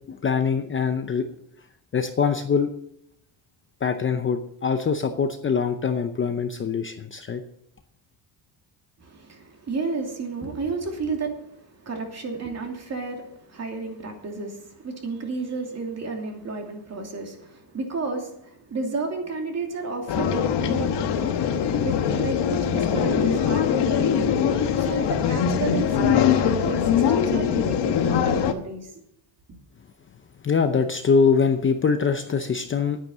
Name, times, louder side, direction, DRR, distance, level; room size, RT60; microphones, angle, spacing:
voice 1, 0.1-1.3 1.9-2.7 3.8-7.4 30.4-33.0, left 5 dB, 25° left, 7 dB, 0.7 m, -23 dB
voice 2, 9.0-21.4 21.8-28.9, right 4 dB, 35° right, 2 dB, 2.8 m, -32 dB
sound 1, 20.1-28.5, left 8 dB, 60° left, 1.3 m, -22 dB
10.5 x 9.5 x 6.1 m, 0.73 s
cardioid pair, 135°, 47 cm